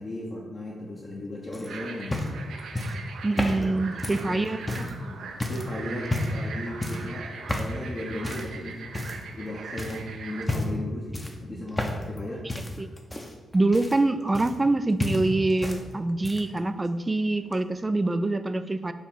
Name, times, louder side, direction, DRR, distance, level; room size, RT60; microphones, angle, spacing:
voice 1, 0.0-2.2 3.5-9.0 9.3-12.5 12.8-12.9, left 1 dB, 40° left, -4 dB, 1.0 m, -37 dB
sound 1, 1.5-5.0 5.4-5.7 6.1-6.5 6.8-7.1 7.5-7.8 8.2-8.5 8.9-9.4 9.8-10.0 10.4-10.8 11.1-12.2 12.5-14.7 15.0-15.8 16.1-16.6 17.5-17.6, left 1 dB, 15° left, 0.8 m, -31 dB
sound 2, 1.7-10.5, right 5 dB, 80° right, 0.7 m, -41 dB
voice 2, 3.2-4.6 12.8-12.9 13.5-18.9, right 2 dB, 20° right, 10 dB, 0.4 m, -25 dB
7.1 x 2.4 x 5.5 m, 1.3 s
cardioid pair, 75°, 0 cm